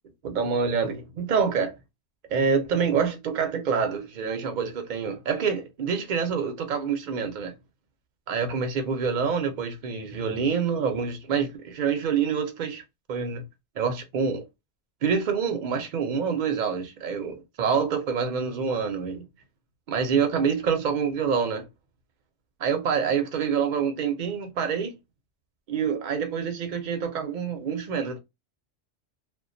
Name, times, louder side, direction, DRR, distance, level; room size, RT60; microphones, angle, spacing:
voice 1, 0.2-1.8 2.3-7.5 8.3-12.8 13.1-13.4 13.8-14.5 15.0-19.3 19.9-21.6 22.6-25.0 25.7-28.2, right 6 dB, 55° right, 0.6 m, -26 dB
2.2 x 2.2 x 2.5 m
omnidirectional pair, 1.2 m